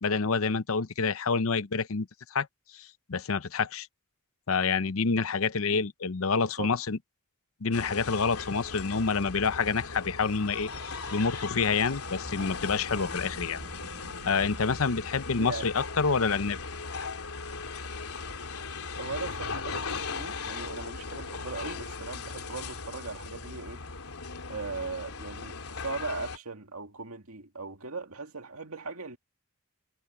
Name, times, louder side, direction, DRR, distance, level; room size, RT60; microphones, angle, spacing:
voice 1, 0.0-2.5 2.7-3.9 4.5-7.0 7.6-10.7 11.1-13.6 14.2-16.6, left 5 dB, 65° left, 0.8 m, -28 dB
voice 2, 6.3-6.8 15.4-15.7 19.0-23.8 24.5-29.2, right 3 dB, 75° right, 2.2 m, -39 dB
sound 1, 7.7-26.4, left 4 dB, 90° left, 3.2 m, -38 dB
sound 2, 11.9-17.1, equal, 40° right, 6.1 m, -50 dB
head